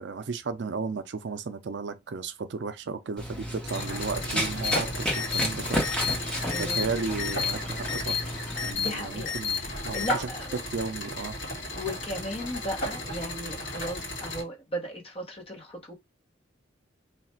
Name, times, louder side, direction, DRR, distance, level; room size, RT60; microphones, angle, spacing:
voice 1, 0.0-6.0 6.6-8.2 8.6-9.6 9.8-10.3 10.7-11.4, right 4 dB, 60° right, 0.4 m, -34 dB
Run, 3.2-8.7, equal, 5° left, 0.9 m, -32 dB
sound 1, 3.7-14.4, left 1 dB, 65° left, 1.8 m, -35 dB
sound 2, 4.6-4.8 5.1-5.5 5.8-6.1 6.5-6.8 7.2-7.5 7.9-8.2 8.6-8.9 9.3-9.6 9.9-10.1, left 7 dB, 90° left, 0.7 m, -30 dB
voice 2, 6.4-6.8 8.8-9.6 9.9-10.6 11.7-15.9, equal, 30° left, 1.0 m, -35 dB
3.2 x 2.4 x 4.3 m
head